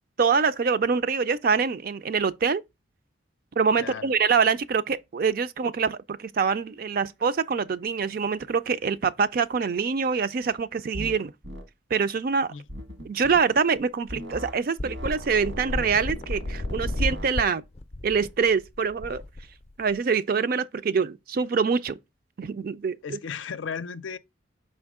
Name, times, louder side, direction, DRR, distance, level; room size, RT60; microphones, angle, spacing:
voice 1, 0.2-2.6 3.6-11.3 11.9-12.5 13.0-17.6 18.0-19.2 19.8-22.0 22.4-23.2, right 5 dB, 50° right, 0.4 m, -25 dB
voice 2, 3.8-4.2 12.5-12.6 23.0-24.2, left 6 dB, 85° left, 0.5 m, -35 dB
sound 1, 10.9-11.2 11.4-11.7 12.7-13.4 14.1-14.6 14.8-17.3, equal, 85° right, 1.5 m, -38 dB
sound 2, 13.8-13.9 14.1-14.2 14.8-20.0, left 1 dB, 35° left, 0.5 m, -32 dB
6.0 x 4.4 x 3.5 m
head